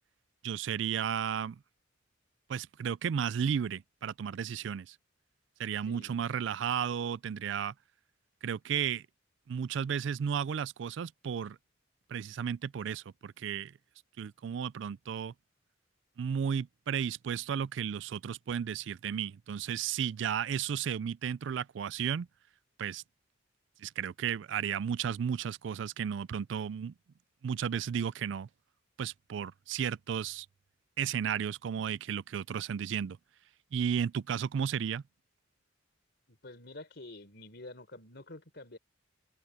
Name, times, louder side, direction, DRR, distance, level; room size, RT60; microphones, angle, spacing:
voice 1, 0.4-1.6 2.5-5.0 5.6-7.7 8.4-9.0 9.5-11.6 12.1-13.7 14.2-15.3 16.2-22.3 22.8-23.0 23.8-26.9 27.4-28.5 29.0-30.5 31.0-33.2 33.7-35.0, right 8 dB, 65° right, 0.3 m, -33 dB
voice 2, 5.8-6.2 36.3-38.8, left 2 dB, 55° left, 4.1 m, -48 dB
head